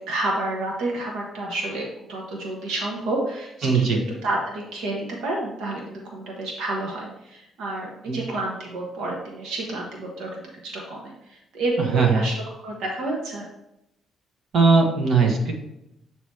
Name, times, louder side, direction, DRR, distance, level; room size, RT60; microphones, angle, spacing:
voice 1, 0.0-13.5, right 2 dB, 85° right, -1 dB, 1.2 m, -30 dB
voice 2, 3.6-4.0 8.1-8.2 11.9-12.2 14.5-15.5, right 4 dB, 65° right, 1 dB, 1.4 m, -19 dB
8.2 x 3.0 x 4.6 m, 0.85 s
cardioid pair, 90°, 0 cm